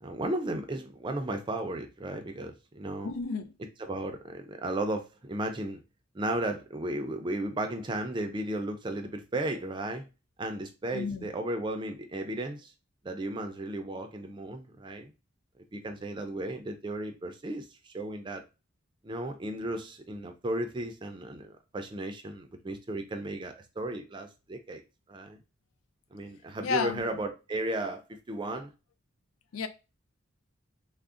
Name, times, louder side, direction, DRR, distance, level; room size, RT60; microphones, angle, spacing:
voice 1, 0.0-3.1 3.8-5.8 6.1-10.0 10.4-12.7 13.0-15.1 15.7-18.4 19.0-24.8 25.1-25.4 26.1-28.7, right 1 dB, 25° right, 0.4 m, -35 dB
voice 2, 3.0-3.5 10.9-11.3 26.6-27.0 29.5-29.7, left 6 dB, 90° left, 0.4 m, -31 dB
3.5 x 2.0 x 2.4 m
head